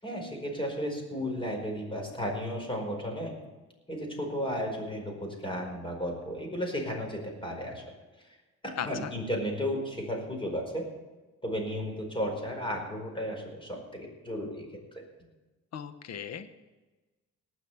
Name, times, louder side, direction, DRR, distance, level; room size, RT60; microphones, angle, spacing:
voice 1, 0.0-3.4 3.9-7.8 8.2-8.4 8.6-10.9 11.4-15.0, equal, 15° left, 1 dB, 4.9 m, -34 dB
voice 2, 8.8-9.1 15.7-16.5, left 8 dB, 60° left, 11 dB, 1.1 m, -37 dB
19.0 x 6.4 x 7.0 m, 1.2 s
cardioid pair, 90°, 30 cm